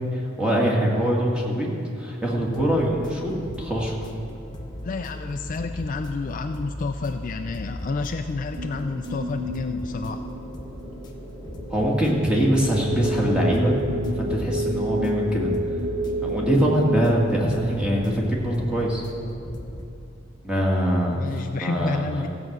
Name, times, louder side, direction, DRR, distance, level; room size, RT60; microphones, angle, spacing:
voice 1, 0.1-1.7 2.0-4.0 11.7-13.7 14.2-15.5 16.2-19.0 20.4-21.3 21.6-22.3, equal, 5° right, -3 dB, 1.9 m, -23 dB
sound 1, 2.4-19.9, left 1 dB, 20° left, 1.1 m, -38 dB
voice 2, 4.8-10.2 21.1-22.3, left 3 dB, 40° left, 7 dB, 0.4 m, -30 dB
sound 2, 8.6-18.3, equal, 80° right, 1.8 m, -30 dB
15.0 x 6.0 x 7.9 m, 2.6 s
head